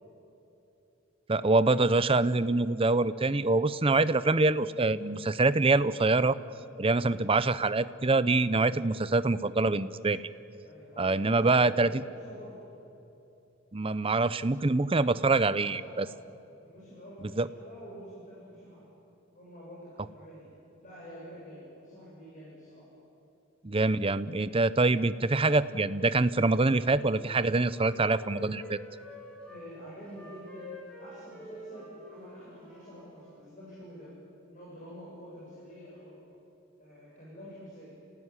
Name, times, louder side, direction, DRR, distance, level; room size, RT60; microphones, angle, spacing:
voice 1, 1.3-6.4 6.8-10.3 11.0-11.9 13.7-16.1 17.4-17.5 23.6-28.8, right 3 dB, 30° right, 15 dB, 0.7 m, -25 dB
voice 2, 10.6-12.6 15.5-16.0 16.6-18.9 19.3-20.5 20.8-22.8 29.5-30.7 31.0-34.1 34.5-36.2 36.8-37.9, equal, 40° left, -6 dB, 7.7 m, -48 dB
Wind instrument woodwind instrument, 26.5-29.6 30.1-33.5, left 1 dB, 5° left, 6.5 m, -48 dB
30.0 x 18.5 x 9.9 m, 2.8 s
head